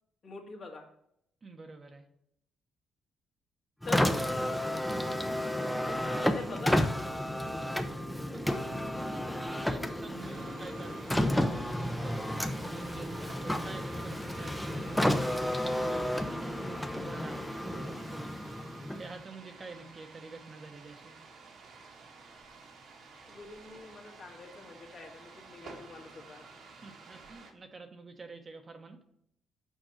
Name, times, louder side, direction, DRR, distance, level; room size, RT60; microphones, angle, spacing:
voice 1, 0.2-0.9 3.9-4.7 6.2-7.7 23.3-26.5, left 3 dB, 55° left, 1 dB, 1.9 m, -44 dB
voice 2, 1.4-2.1 4.1-4.3 5.3-6.6 7.4-7.7 8.3-18.3 19.0-21.1 26.7-29.0, right 3 dB, 35° right, 5 dB, 1.0 m, -48 dB
Car, 3.8-19.2, left 1 dB, 5° left, 0.7 m, -32 dB
sound 1, 10.2-27.5, right 4 dB, 70° right, 1.5 m, -52 dB
6.5 x 4.5 x 6.4 m, 0.74 s
cardioid pair, 90°, 0 cm